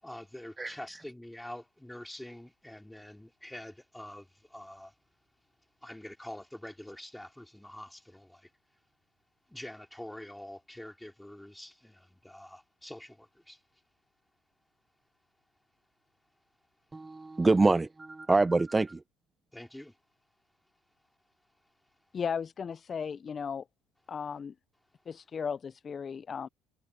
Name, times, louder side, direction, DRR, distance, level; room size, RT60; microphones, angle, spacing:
voice 1, 0.0-4.9 5.8-8.5 9.5-13.6 19.5-20.0, left 1 dB, 5° left, 3.8 m, -46 dB
voice 2, 16.9-19.0, right 3 dB, 15° right, 0.6 m, -25 dB
voice 3, 22.1-23.6 24.1-24.5 25.1-26.5, left 6 dB, 35° left, 0.4 m, -35 dB
supercardioid pair, 85°, 0 cm